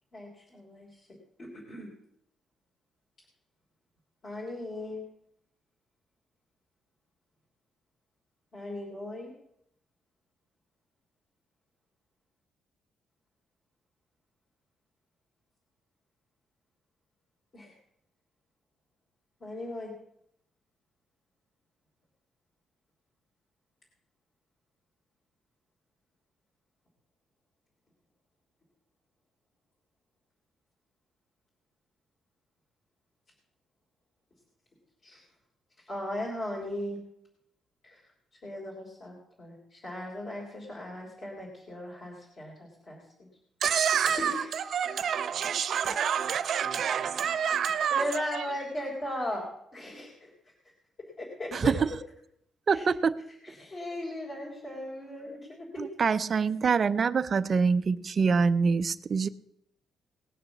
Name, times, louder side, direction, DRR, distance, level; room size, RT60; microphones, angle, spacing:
voice 1, 0.1-0.9 1.4-1.9 4.2-5.0 8.5-9.3 17.5-17.7 19.4-19.9 35.0-35.2 35.9-37.0 37.8-38.0 38.4-43.0 44.2-44.5 47.9-49.5 49.7-50.3 51.2-51.7 52.7-52.9 53.4-55.9, left 1 dB, 30° left, 3.3 m, -37 dB
voice 2, 43.6-48.5, right 8 dB, 50° right, 0.8 m, -28 dB
voice 3, 51.5-51.9 52.7-53.2 55.8-59.3, right 5 dB, 30° right, 0.5 m, -25 dB
19.0 x 6.7 x 7.2 m
cardioid pair, 170°, 0 cm